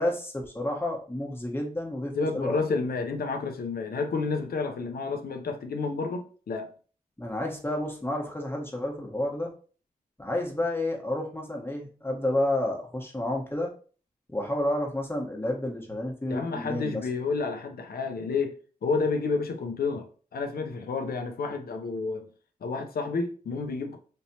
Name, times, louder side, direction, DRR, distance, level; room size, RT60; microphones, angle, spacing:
voice 1, 0.0-2.6 7.2-9.5 10.2-13.7 14.3-17.0, left 1 dB, 15° left, 1.3 m, -30 dB
voice 2, 2.1-6.7 16.3-22.3 22.6-24.0, left 4 dB, 80° left, 0.6 m, -30 dB
4.2 x 3.2 x 2.8 m
cardioid pair, 60°, 15 cm